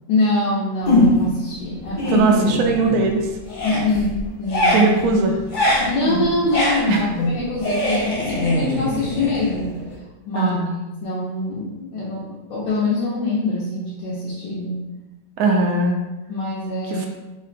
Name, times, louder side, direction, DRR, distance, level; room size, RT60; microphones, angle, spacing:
voice 1, 0.1-2.2 3.6-4.9 5.8-9.8 10.3-10.5 11.0-14.8 16.3-17.1, left 2 dB, 80° left, -8 dB, 1.5 m, -24 dB
sound 1, 0.9-1.4 1.8-3.2 3.4-10.0, left 1 dB, 55° left, 0.5 m, -22 dB
voice 2, 2.1-3.3 4.7-5.4 6.9-7.1 10.3-10.8 15.4-16.0 16.9-17.1, right 3 dB, 80° right, 2 dB, 0.8 m, -19 dB
3.6 x 2.1 x 3.9 m, 1.0 s
omnidirectional pair, 2.1 m